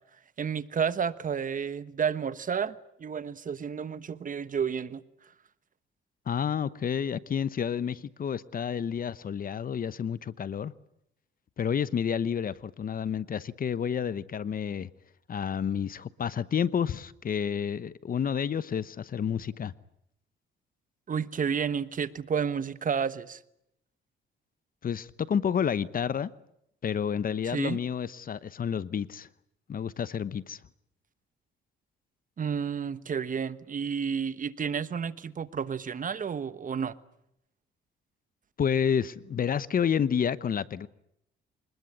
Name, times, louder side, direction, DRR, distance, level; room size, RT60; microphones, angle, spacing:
voice 1, 0.4-5.0 21.1-23.4 27.5-27.8 32.4-36.9, right 7 dB, 40° right, 1.2 m, -31 dB
voice 2, 6.3-10.7 11.6-14.9 15.3-19.7 24.8-26.3 26.8-29.3 29.7-30.6 38.6-40.9, left 7 dB, 45° left, 1.0 m, -30 dB
25.5 x 20.5 x 9.7 m
cardioid pair, 90°, 20 cm